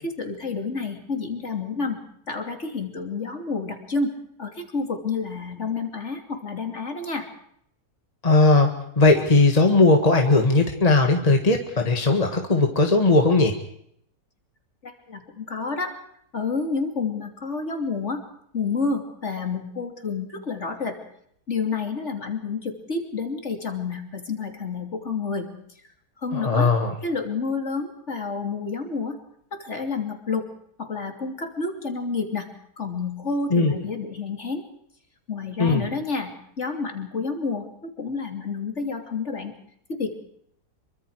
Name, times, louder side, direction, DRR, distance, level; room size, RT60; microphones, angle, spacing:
voice 1, 0.0-2.0 2.3-4.1 4.4-7.3 14.8-15.9 16.3-18.2 18.5-21.0 21.5-25.5 26.2-26.7 27.0-29.2 29.5-30.4 30.8-32.5 32.8-34.6 35.3-36.3 36.6-39.5 39.9-40.2, left 4 dB, 45° left, 5 dB, 3.1 m, -29 dB
voice 2, 8.2-8.7 9.0-13.5 26.3-26.9 33.5-33.7 35.6-35.8, left 3 dB, 25° left, 3 dB, 1.9 m, -18 dB
26.0 x 24.0 x 4.8 m, 0.69 s
omnidirectional pair, 1.8 m